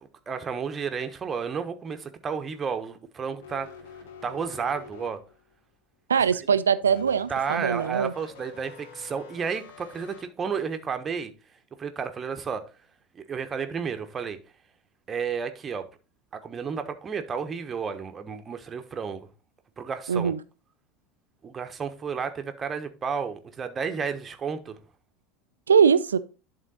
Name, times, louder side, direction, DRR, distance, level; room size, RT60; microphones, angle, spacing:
voice 1, 0.0-3.7 4.2-5.2 7.3-11.3 11.8-12.6 13.1-14.4 15.1-15.9 16.3-19.3 19.8-20.3 21.4-24.8, right 6 dB, 25° right, 1.1 m, -32 dB
sound 1, 3.4-5.5 6.8-10.2, left 6 dB, 65° left, 1.2 m, -47 dB
voice 2, 6.1-8.1 20.1-20.4 25.7-26.2, right 7 dB, 80° right, 0.5 m, -22 dB
11.0 x 3.8 x 4.1 m
figure-of-eight pair, 75°, 0 cm